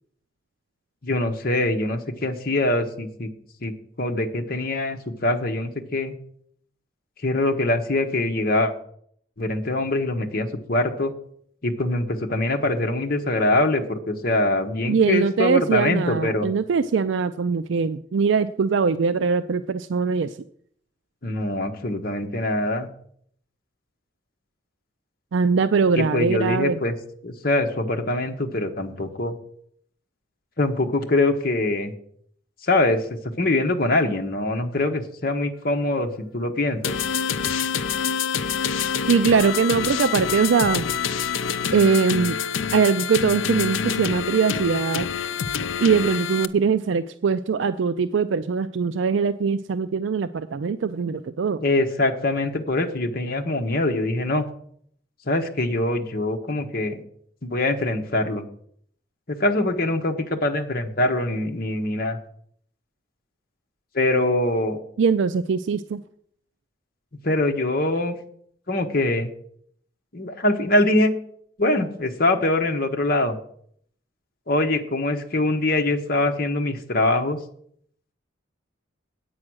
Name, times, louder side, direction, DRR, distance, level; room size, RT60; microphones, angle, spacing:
voice 1, 1.0-3.3 3.6-3.7 4.0-6.1 7.2-8.7 9.4-11.1 11.6-16.5 21.2-22.9 25.9-27.0 27.2-29.4 30.6-31.9 32.6-33.1 33.4-37.0 51.6-54.4 55.3-57.0 57.4-58.4 59.3-62.2 63.9-64.8 67.2-68.1 68.7-69.3 70.1-71.1 71.6-73.4 74.5-77.4, left 2 dB, 45° left, 4 dB, 1.2 m, -23 dB
voice 2, 14.9-20.4 25.3-26.8 39.1-40.9 41.7-42.4 42.7-45.1 45.8-51.6 65.0-66.0, right 5 dB, 70° right, 12 dB, 0.4 m, -21 dB
sound 1, 36.8-46.4, left 7 dB, 85° left, 0.5 m, -26 dB
8.7 x 8.7 x 6.2 m, 0.64 s
head